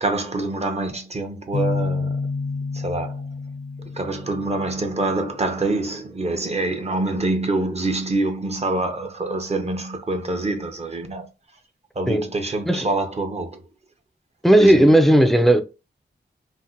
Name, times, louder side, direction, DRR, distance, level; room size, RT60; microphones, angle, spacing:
voice 1, 0.0-2.2 2.7-3.2 3.9-11.3 12.0-13.6 14.6-15.0, right 2 dB, 35° right, 0.6 m, -25 dB
sound 1, 1.5-5.2, left 4 dB, 75° left, 0.4 m, -29 dB
voice 2, 14.4-15.6, right 1 dB, ahead, 0.3 m, -15 dB
2.6 x 2.1 x 3.8 m
wide cardioid pair, 125°, 19 cm